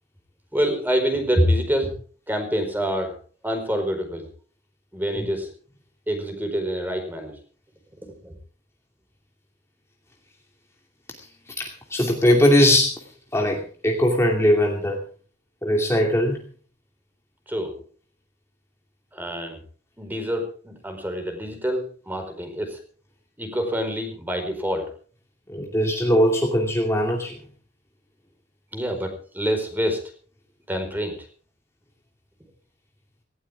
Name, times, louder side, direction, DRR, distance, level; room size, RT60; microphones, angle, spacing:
voice 1, 0.5-1.9 2.3-3.2 3.4-4.3 4.9-5.5 6.1-7.4 8.0-8.3 17.5-17.7 19.1-19.6 20.0-22.8 23.4-24.9 28.7-30.0 30.7-31.2, equal, 10° right, 5 dB, 4.6 m, -26 dB
voice 2, 11.6-12.9 13.3-15.0 15.6-16.4 25.5-27.4, equal, 15° left, 0 dB, 2.5 m, -20 dB
18.5 x 17.0 x 3.6 m, 0.40 s
head